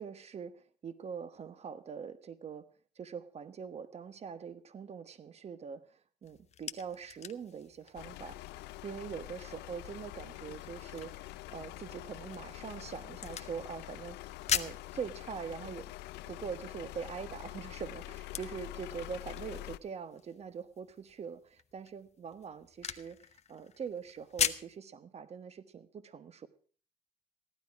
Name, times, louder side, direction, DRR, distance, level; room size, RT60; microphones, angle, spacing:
voice 1, 0.0-2.7 3.0-15.9 16.3-23.2 23.5-26.5, right 6 dB, 40° right, 13 dB, 1.2 m, -43 dB
sound 1, 6.2-24.8, left 8 dB, 40° left, 0.9 m, -42 dB
sound 2, 7.9-19.8, left 17 dB, 85° left, 0.6 m, -46 dB
16.0 x 12.0 x 4.7 m, 0.43 s
cardioid pair, 110°, 17 cm